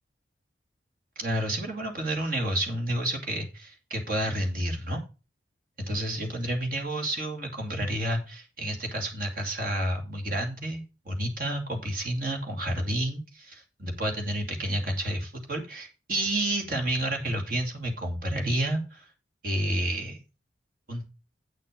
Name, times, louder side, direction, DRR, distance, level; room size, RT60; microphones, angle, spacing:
voice 1, 1.2-5.0 5.8-19.1 19.4-20.2 20.9-21.0, right 1 dB, 45° right, 3 dB, 2.5 m, -30 dB
8.6 x 6.5 x 5.1 m, 0.31 s
head